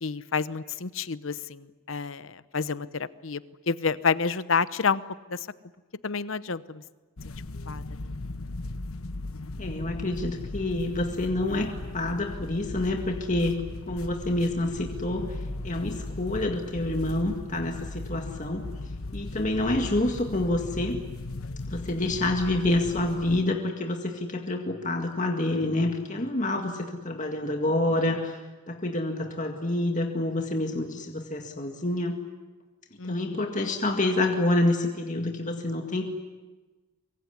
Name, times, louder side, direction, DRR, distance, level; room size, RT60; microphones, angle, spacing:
voice 1, 0.0-5.0 5.3-5.5 6.0-6.8 7.7-8.1 33.0-33.5, left 5 dB, 65° left, 15 dB, 0.9 m, -29 dB
sound 1, 7.2-23.4, left 2 dB, 85° left, 1.1 m, -37 dB
voice 2, 9.6-18.6 19.1-21.0 21.7-28.4 28.7-32.2 33.0-36.1, left 1 dB, 35° left, 3 dB, 2.0 m, -28 dB
24.0 x 23.5 x 9.9 m, 1.2 s
head